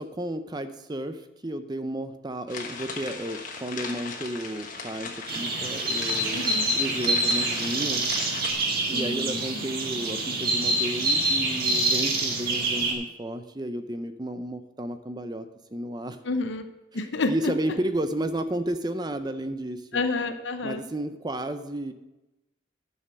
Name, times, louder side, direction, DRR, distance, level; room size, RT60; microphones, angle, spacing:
voice 1, 0.0-6.4 6.7-8.1 8.9-15.4 15.7-16.2 17.3-19.9 20.6-21.9, right 1 dB, 20° right, 9 dB, 0.5 m, -32 dB
sound 1, 2.5-8.5, left 4 dB, 40° left, 1.3 m, -38 dB
sound 2, 5.3-12.9, right 2 dB, 50° right, 1.6 m, -26 dB
voice 2, 6.3-6.8 8.9-9.7 16.2-16.6 16.9-17.5 19.9-20.8, left 3 dB, 65° left, 8 dB, 0.7 m, -29 dB
10.5 x 6.8 x 6.1 m, 1.0 s
head